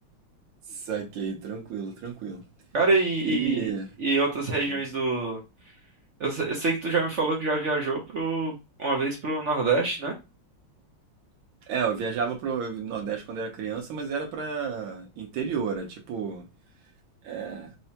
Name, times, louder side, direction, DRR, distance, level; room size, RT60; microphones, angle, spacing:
voice 1, 0.7-2.4 3.2-3.9 4.7-4.8 11.7-16.4 17.2-17.8, right 6 dB, 85° right, 1.8 m, -31 dB
voice 2, 2.7-3.7 4.0-5.4 6.2-10.1, right 3 dB, 65° right, 0.7 m, -26 dB
4.8 x 2.1 x 2.8 m
omnidirectional pair, 2.2 m